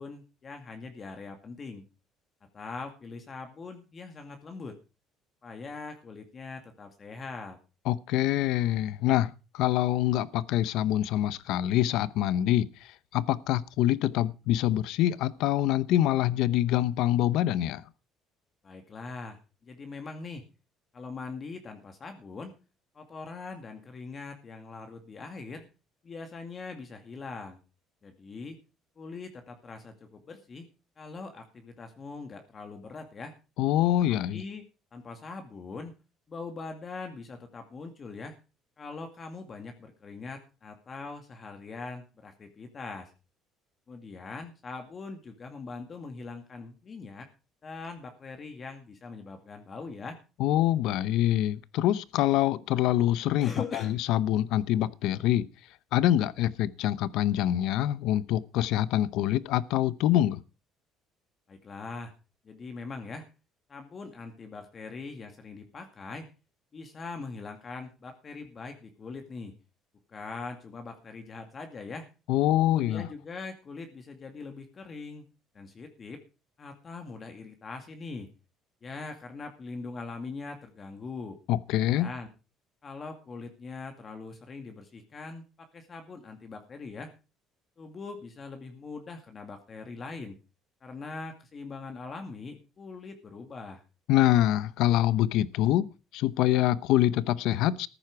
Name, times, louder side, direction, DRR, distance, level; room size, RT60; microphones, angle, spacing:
voice 1, 0.0-1.8 2.5-4.8 5.4-7.6 18.6-20.4 20.9-22.6 22.9-25.7 26.0-27.6 28.0-28.6 29.0-30.7 31.0-33.3 34.3-34.6 34.9-35.9 36.3-38.4 38.8-43.1 43.9-47.3 47.6-50.2 53.4-53.9 61.5-62.1 62.4-63.3 63.7-66.3 66.7-69.5 70.1-72.1 72.7-75.3 75.5-76.2 76.6-78.3 78.8-81.4 81.9-82.3 82.8-87.1 87.8-90.4 90.8-93.8, left 4 dB, 35° left, 2.2 m, -42 dB
voice 2, 7.9-17.8 33.6-34.4 50.4-55.5 55.9-60.4 72.3-73.1 81.5-82.1 94.1-97.9, left 13 dB, 75° left, 0.8 m, -25 dB
14.0 x 10.5 x 4.8 m
cardioid pair, 110°, 0 cm